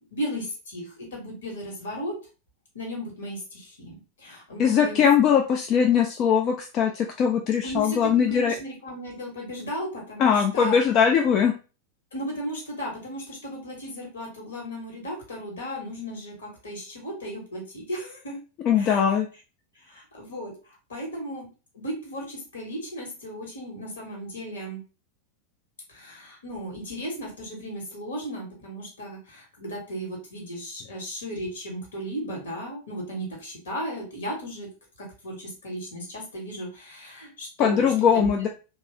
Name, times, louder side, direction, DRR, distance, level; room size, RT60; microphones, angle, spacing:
voice 1, 0.1-2.1 2.7-5.0 7.6-10.8 12.1-18.4 18.7-19.0 19.7-20.5 20.9-21.5 21.7-24.8 25.9-34.7 35.0-38.3, equal, 65° left, 0 dB, 1.2 m, -35 dB
voice 2, 4.6-8.5 10.2-11.5 18.6-19.3 37.6-38.5, left 7 dB, 35° left, 3 dB, 0.3 m, -21 dB
3.0 x 2.3 x 2.8 m, 0.33 s
figure-of-eight pair, 90°, 0 cm